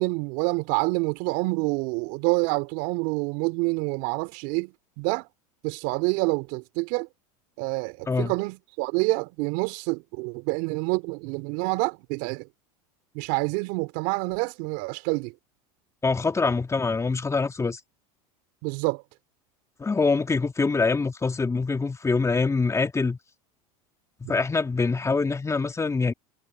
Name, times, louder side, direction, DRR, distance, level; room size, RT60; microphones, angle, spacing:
voice 1, 0.0-5.3 5.6-7.1 7.6-12.5 13.1-15.3 18.6-19.0 24.2-24.3, right 28 dB, 65° right, 3.6 m, -27 dB
voice 2, 16.0-17.8 19.8-23.2 24.2-26.1, left 4 dB, 15° left, 2.4 m, -24 dB
hypercardioid pair, 95°, 18 cm